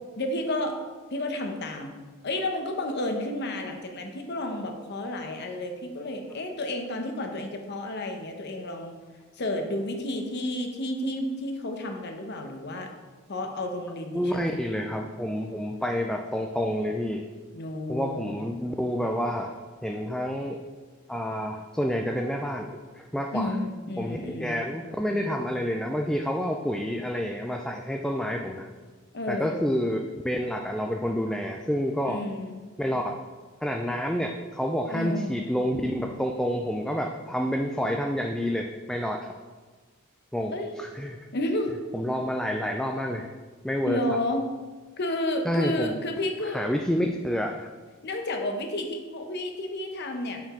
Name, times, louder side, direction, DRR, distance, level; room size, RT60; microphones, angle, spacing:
voice 1, 0.2-0.8 1.1-1.9 2.2-8.9 9.4-12.9 13.3-14.6 17.5-18.3 23.3-24.6 29.1-29.6 32.1-32.6 34.9-35.4 40.5-40.8 41.3-41.8 43.8-44.4 45.0-46.6 48.0-50.4, left 1 dB, 55° left, 4 dB, 0.8 m, -31 dB
voice 2, 14.1-17.2 17.9-19.6 19.8-20.6 21.1-22.7 22.9-23.5 24.0-28.7 29.3-30.0 30.2-32.2 32.8-33.2 33.6-39.3 40.3-41.2 41.9-43.3 43.6-44.0 45.4-45.9 46.5-47.7, equal, 5° left, 2 dB, 0.3 m, -28 dB
6.6 x 5.9 x 3.7 m, 1.4 s
head